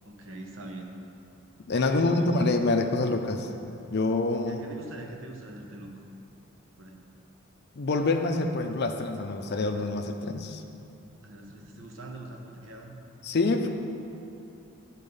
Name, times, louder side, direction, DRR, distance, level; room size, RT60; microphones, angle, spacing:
voice 1, 0.0-0.9 1.7-2.6 4.5-6.0 6.8-7.0 11.2-13.0, right 2 dB, 70° right, 1 dB, 0.9 m, -41 dB
voice 2, 1.7-3.5 3.9-4.6 7.8-10.6 13.2-13.7, left 3 dB, 50° left, 5 dB, 0.5 m, -26 dB
9.7 x 4.2 x 5.3 m, 2.7 s
head